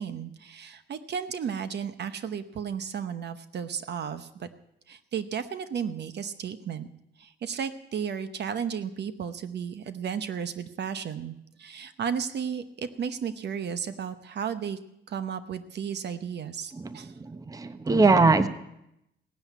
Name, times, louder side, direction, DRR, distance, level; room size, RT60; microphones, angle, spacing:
voice 1, 0.0-4.5 4.9-6.9 7.2-14.8 15.1-17.1, right 7 dB, 60° right, 12 dB, 0.9 m, -34 dB
voice 2, 16.7-18.5, right 3 dB, 15° right, 12 dB, 0.8 m, -22 dB
17.0 x 7.1 x 9.2 m, 0.83 s
cardioid pair, 90°, 20 cm